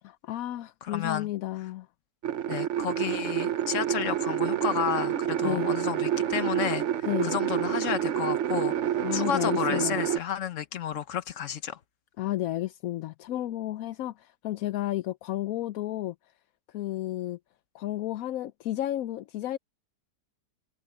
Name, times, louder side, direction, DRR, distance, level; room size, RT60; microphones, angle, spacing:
voice 1, 0.0-1.9 5.4-5.7 7.1-7.3 9.0-10.0 12.2-16.1 16.7-17.4 17.7-19.6, left 14 dB, 70° left, 0.9 m, -32 dB
voice 2, 0.8-1.3 2.5-6.8 7.2-11.8, left 9 dB, 55° left, 1.3 m, -31 dB
sound 1, 2.2-10.2, right 10 dB, 55° right, 0.8 m, -28 dB
omnidirectional pair, 1.8 m